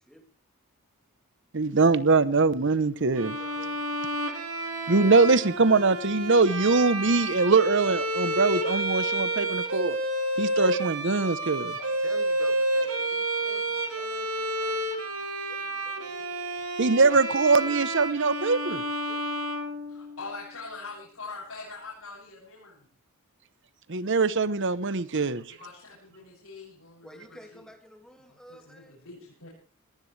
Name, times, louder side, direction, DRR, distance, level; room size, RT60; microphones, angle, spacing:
voice 1, 1.5-3.4 4.9-10.0 10.4-11.8 16.8-18.8 23.9-25.4, right 4 dB, 55° right, 0.9 m, -22 dB
voice 2, 3.0-3.8 11.8-14.8 15.5-16.1 17.6-17.7 19.1-19.3 27.0-28.9, equal, 5° left, 2.2 m, -50 dB
Bowed string instrument, 3.2-20.4, right 1 dB, 70° right, 2.6 m, -30 dB
voice 3, 19.9-22.9 25.2-27.7 28.3-29.5, left 3 dB, 75° left, 7.5 m, -43 dB
20.0 x 18.5 x 3.4 m
head